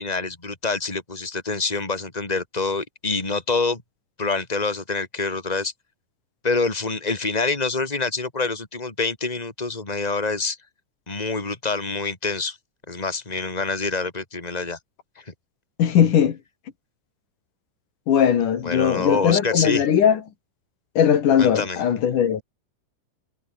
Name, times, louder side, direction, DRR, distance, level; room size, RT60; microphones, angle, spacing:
voice 1, 0.0-3.8 4.2-5.7 6.4-10.6 11.1-12.6 12.9-14.8 15.3-15.4 18.6-19.8 21.4-21.8, left 3 dB, 10° left, 3.6 m, -26 dB
voice 2, 15.8-16.4 18.1-20.2 21.0-22.4, left 8 dB, 75° left, 3.6 m, -19 dB
omnidirectional pair, 3.7 m